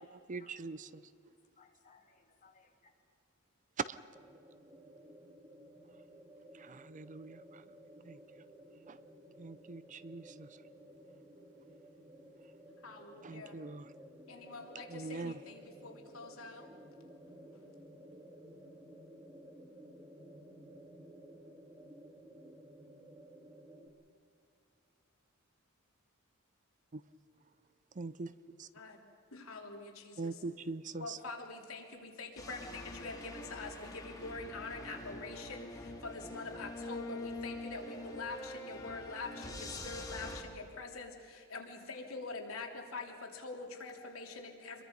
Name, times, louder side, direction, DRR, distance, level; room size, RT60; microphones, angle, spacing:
voice 1, 0.1-1.0 3.9-4.0 6.6-7.6 8.0-8.2 8.9-9.0 9.4-10.5 13.2-13.9 14.9-15.4 26.9-27.0 28.0-28.3 28.6-28.7 30.2-31.2, right 3 dB, 35° right, 15 dB, 0.6 m, -43 dB
voice 2, 1.0-2.9, left 4 dB, 40° left, 0 dB, 3.3 m, -65 dB
sound 1, 4.1-23.9, equal, 15° right, 2.0 m, -55 dB
voice 3, 14.3-14.8 15.1-15.6 15.8-16.6 28.8-28.9 29.5-29.8 31.0-33.7 34.2-35.7 36.0-39.6 39.8-41.1 41.5-42.7 42.9-43.1 43.4-44.8, left 3 dB, 75° left, 1 dB, 3.3 m, -44 dB
sound 2, 32.4-40.4, left 1 dB, 20° left, 2.7 m, -45 dB
27.5 x 22.5 x 5.4 m, 2.5 s
head